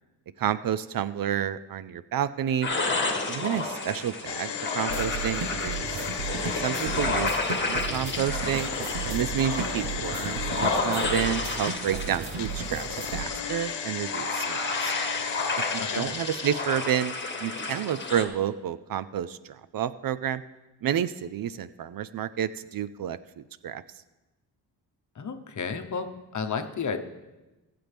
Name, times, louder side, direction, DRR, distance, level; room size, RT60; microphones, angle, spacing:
voice 1, 0.4-2.7 3.3-6.1 6.4-7.3 7.6-8.7 9.1-14.9 15.6-17.1 17.4-20.4 20.8-23.8, right 10 dB, 55° right, 15 dB, 0.5 m, -30 dB
sound 1, 2.6-18.3, left 3 dB, 25° left, 1.8 m, -31 dB
sound 2, 4.2-11.8 12.3-17.1 17.3-17.4, left 8 dB, 75° left, 1.1 m, -36 dB
sound 3, 4.9-13.2, right 6 dB, 80° right, 1.0 m, -35 dB
voice 2, 15.8-16.1 25.1-27.0, left 5 dB, 45° left, 7 dB, 1.0 m, -32 dB
20.0 x 7.7 x 3.5 m, 1.1 s
cardioid pair, 90°, 41 cm